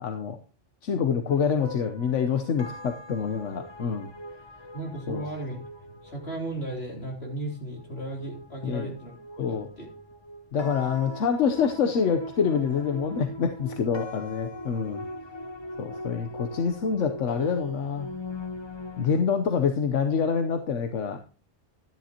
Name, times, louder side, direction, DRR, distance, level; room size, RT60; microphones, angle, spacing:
voice 1, 0.0-0.4 0.8-4.1 5.1-5.2 8.6-8.9 9.4-9.7 10.5-15.0 15.8-18.1 19.0-21.2, left 6 dB, 85° left, 7 dB, 1.2 m, -26 dB
sound 1, 1.3-19.1, left 1 dB, 25° left, 1.0 m, -41 dB
voice 2, 4.7-9.9, right 1 dB, 60° left, -1 dB, 3.7 m, -36 dB
13.0 x 10.5 x 2.9 m, 0.35 s
omnidirectional pair, 1.2 m